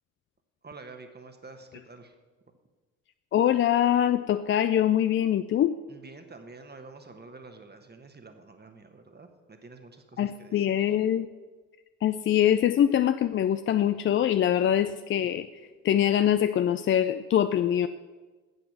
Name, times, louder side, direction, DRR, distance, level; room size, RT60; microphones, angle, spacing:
voice 1, 0.6-2.1 5.9-10.7, right 3 dB, 25° right, 6 dB, 1.3 m, -48 dB
voice 2, 3.3-5.8 10.2-11.3 12.0-17.9, left 10 dB, 30° left, 11 dB, 0.4 m, -24 dB
9.5 x 7.8 x 6.0 m, 1.3 s
hypercardioid pair, 45°, 42 cm